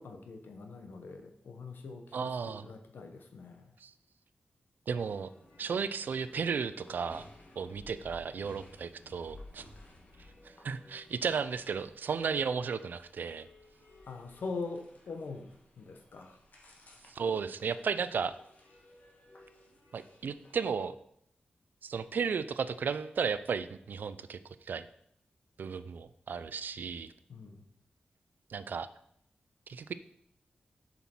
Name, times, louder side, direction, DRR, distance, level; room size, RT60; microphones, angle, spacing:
voice 1, 0.0-3.7 14.1-16.4 27.3-27.6, left 4 dB, 85° left, 5 dB, 1.0 m, -43 dB
voice 2, 2.1-2.7 3.8-3.9 4.9-5.3 5.6-7.3 7.6-9.7 10.6-13.5 17.1-18.3 19.9-20.9 21.8-24.4 24.7-24.9 25.6-27.1 28.5-28.9 29.7-29.9, right 6 dB, 75° right, 13 dB, 0.4 m, -34 dB
sound 1, 5.0-20.6, left 2 dB, 60° left, 1.5 m, -56 dB
7.1 x 5.7 x 4.4 m, 0.72 s
wide cardioid pair, 95°, 3 cm